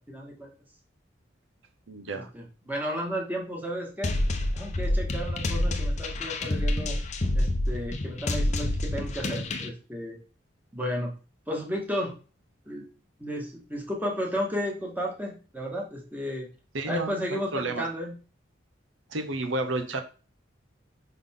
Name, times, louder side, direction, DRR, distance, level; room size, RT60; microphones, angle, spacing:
voice 1, 0.1-0.5 2.1-4.2 4.5-7.0 7.3-10.2 10.7-11.1 11.5-12.1 12.7-12.8 13.2-16.5 16.9-18.1, equal, 10° right, -1 dB, 1.8 m, -33 dB
voice 2, 1.9-2.3 16.7-17.8 19.1-20.0, right 2 dB, 85° right, 7 dB, 0.9 m, -31 dB
sound 1, 4.0-9.7, left 1 dB, 35° left, 0.7 m, -28 dB
5.8 x 5.6 x 3.7 m, 0.35 s
head